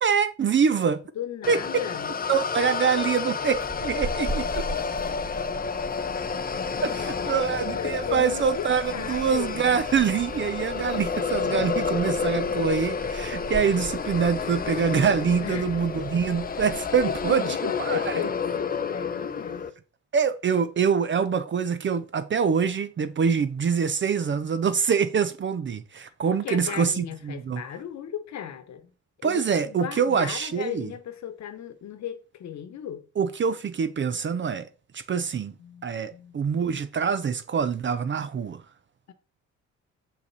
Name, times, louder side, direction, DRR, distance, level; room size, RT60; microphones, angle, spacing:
voice 1, 0.0-1.0 1.5-1.6 2.3-4.7 6.8-18.3 20.1-27.6 29.2-30.9 33.2-35.5 35.8-38.6, right 6 dB, 40° right, 0.6 m, -25 dB
voice 2, 1.1-2.1 6.8-7.4 7.7-8.7 8.9-9.7 15.4-15.7 17.0-19.7 26.2-28.9 29.2-33.1 35.6-36.4 39.1-39.2, left 10 dB, 65° left, 1.1 m, -36 dB
sound 1, 1.4-19.7, left 5 dB, 30° left, 0.7 m, -30 dB
sound 2, 3.5-17.3, right 1 dB, 10° right, 2.7 m, -40 dB
6.8 x 5.6 x 4.1 m
cardioid pair, 90°, 30 cm